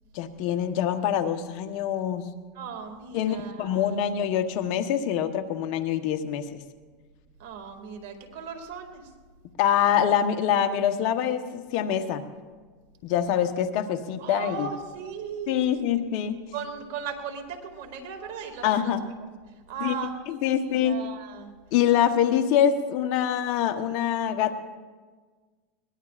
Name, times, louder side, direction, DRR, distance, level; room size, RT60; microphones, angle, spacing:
voice 1, 0.1-2.3 3.1-6.6 9.6-12.2 13.0-14.7 15.5-16.4 18.6-19.0 19.8-21.0 21.7-24.6, left 9 dB, 60° left, 8 dB, 1.1 m, -25 dB
voice 2, 2.6-4.0 7.4-9.0 14.2-15.8 16.5-18.9 19.7-20.2 20.4-21.5, right 6 dB, 70° right, 4 dB, 2.3 m, -37 dB
21.5 x 19.0 x 2.5 m, 1.4 s
supercardioid pair, 110°, 0 cm